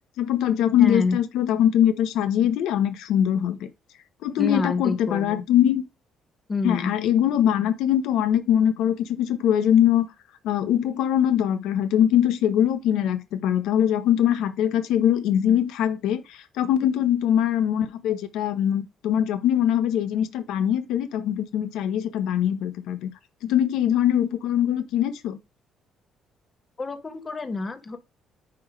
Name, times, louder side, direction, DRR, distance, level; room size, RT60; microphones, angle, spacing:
voice 1, 0.2-3.7 4.2-5.8 6.6-10.1 10.4-23.1 23.4-25.4, left 10 dB, 90° left, 0.7 m, -22 dB
voice 2, 0.8-1.2 4.4-5.4 6.5-6.9 26.8-28.0, left 4 dB, 25° left, 1.0 m, -27 dB
9.4 x 3.3 x 4.9 m
cardioid pair, 135°, 0 cm